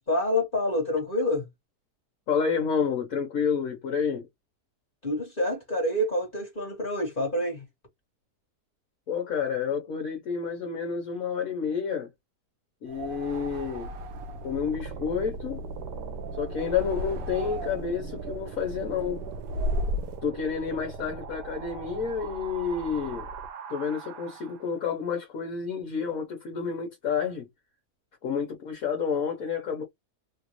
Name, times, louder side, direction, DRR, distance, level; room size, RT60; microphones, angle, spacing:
voice 1, 0.1-1.4 5.0-7.6, left 1 dB, 35° left, 1.5 m, -27 dB
voice 2, 2.3-4.3 9.1-12.1 12.8-13.9 14.4-15.6 16.3-19.2 20.2-23.3 23.7-27.5 28.2-29.8, left 6 dB, 65° left, 1.3 m, -29 dB
sound 1, 12.9-20.2, equal, 70° right, 1.1 m, -36 dB
sound 2, 13.9-24.8, right 4 dB, 85° right, 1.3 m, -39 dB
3.2 x 2.5 x 2.9 m
omnidirectional pair, 1.7 m